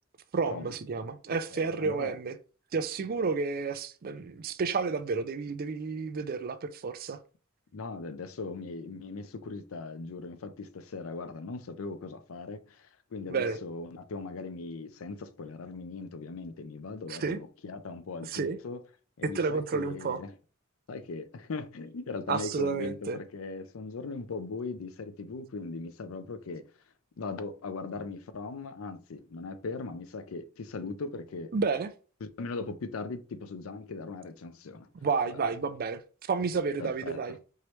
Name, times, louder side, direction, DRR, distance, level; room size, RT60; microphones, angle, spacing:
voice 1, 0.3-2.4 2.7-7.2 13.3-13.6 17.1-17.4 18.3-18.6 19.3-20.2 22.3-23.2 31.5-31.9 35.0-37.4, right 4 dB, 45° right, 0.4 m, -31 dB
voice 2, 1.3-2.2 7.7-18.8 19.2-20.3 20.9-26.7 27.2-31.5 32.2-34.9 35.2-35.4 36.8-37.2, left 3 dB, 80° left, 0.5 m, -39 dB
4.6 x 3.0 x 3.1 m
head